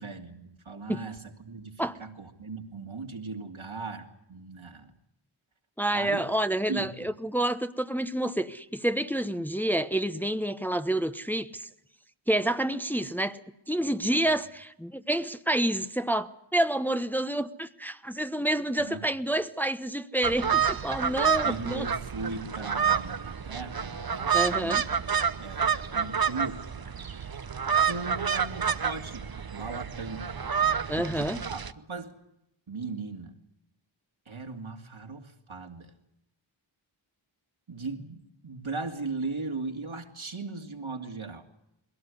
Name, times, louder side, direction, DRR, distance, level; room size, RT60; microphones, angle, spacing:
voice 1, 0.0-4.9 5.9-6.3 6.7-7.1 14.1-14.2 18.8-19.1 21.4-24.9 25.4-26.6 27.9-30.3 31.1-32.1 32.7-33.3 34.3-35.9 37.7-41.5, right 3 dB, 75° right, 2.7 m, -38 dB
voice 2, 5.8-11.7 12.3-13.4 13.7-21.9 24.3-24.8 30.9-31.4, right 1 dB, 5° left, 1.0 m, -28 dB
sound 1, 20.2-31.7, right 7 dB, 45° right, 0.9 m, -29 dB
21.5 x 17.5 x 9.8 m
wide cardioid pair, 45°, 49 cm